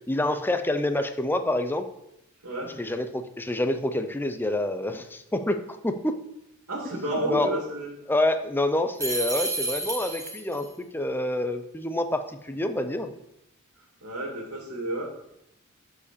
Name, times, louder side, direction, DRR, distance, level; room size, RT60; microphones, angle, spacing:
voice 1, 0.1-1.9 2.8-6.2 7.3-7.5 8.1-13.1, left 1 dB, 10° left, 8 dB, 0.6 m, -27 dB
voice 2, 6.7-7.9 14.0-15.0, right 1 dB, 85° right, -2 dB, 2.2 m, -31 dB
sound 1, 9.0-10.7, right 2 dB, 15° right, 1.3 m, -30 dB
7.2 x 4.9 x 6.8 m, 0.83 s
head